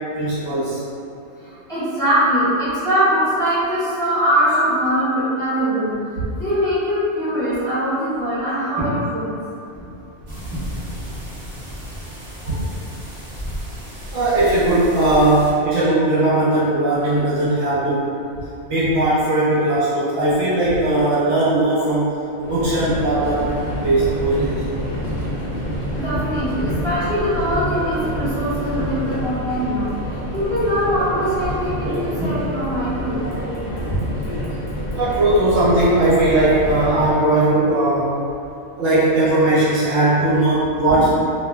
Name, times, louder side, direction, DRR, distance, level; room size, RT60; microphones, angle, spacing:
voice 1, 0.1-0.8 12.6-12.7 14.1-18.0 18.7-24.6 33.9-34.0 35.0-38.2 38.8-41.1, right 2 dB, 70° right, -10 dB, 1.0 m, -18 dB
voice 2, 1.7-5.9 6.4-9.2 9.8-9.9 12.4-12.5 14.1-14.2 25.9-29.9 30.3-33.2 34.0-34.1 40.9-41.1, equal, 5° left, -16 dB, 1.2 m, -21 dB
sound 1, 10.3-15.5, equal, 35° right, 0.6 m, -33 dB
Subway metro underground, 22.4-37.2, equal, 55° left, 0.5 m, -27 dB
2.9 x 2.5 x 2.2 m, 2.6 s
omnidirectional pair, 1.2 m